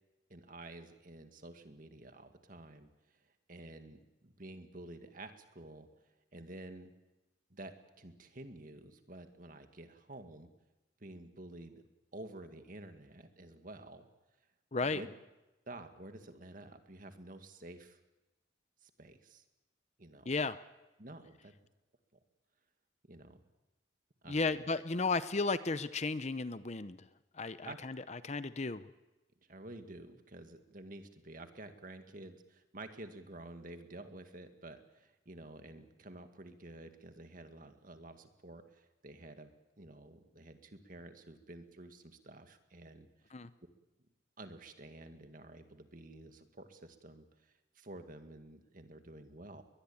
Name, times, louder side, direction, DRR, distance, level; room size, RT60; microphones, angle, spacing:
voice 1, 0.3-2.9 3.5-5.9 6.3-6.9 7.5-10.5 11.0-11.8 12.1-14.1 14.8-15.1 15.7-18.0 18.8-19.4 20.0-20.3 21.0-21.5 23.1-23.4 24.2-24.6 27.6-27.8 29.5-39.5 39.8-43.3 44.4-49.6, right 2 dB, 45° right, 7 dB, 2.1 m, -50 dB
voice 2, 14.7-15.0 20.3-20.6 24.3-27.0 27.4-28.9 43.3-43.5, left 3 dB, 35° left, 14 dB, 0.8 m, -34 dB
22.0 x 20.5 x 8.7 m, 1.0 s
head